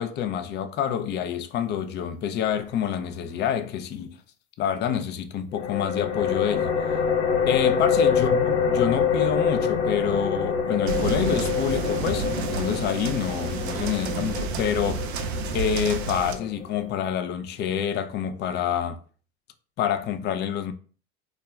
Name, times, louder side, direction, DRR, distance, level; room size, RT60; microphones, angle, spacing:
voice 1, 0.0-4.2 4.6-6.7 7.5-15.1 15.5-19.0 19.8-20.7, left 8 dB, 35° left, 0.4 m, -27 dB
sound 1, 5.5-16.9, left 6 dB, 90° left, 0.6 m, -26 dB
sound 2, 10.9-16.3, right 5 dB, 90° right, 0.5 m, -30 dB
2.3 x 2.2 x 3.0 m
hypercardioid pair, 95°, 32 cm